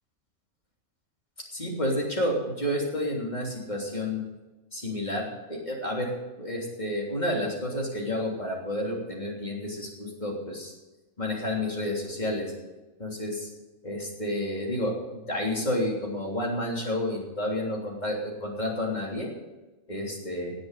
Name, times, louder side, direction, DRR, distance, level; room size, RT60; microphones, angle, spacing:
voice 1, 1.5-4.2 4.7-10.7 11.2-12.5 13.0-13.5 13.8-19.3 19.9-20.5, left 1 dB, 30° left, -2 dB, 3.4 m, -30 dB
18.5 x 7.9 x 6.7 m, 1.1 s
omnidirectional pair, 1.4 m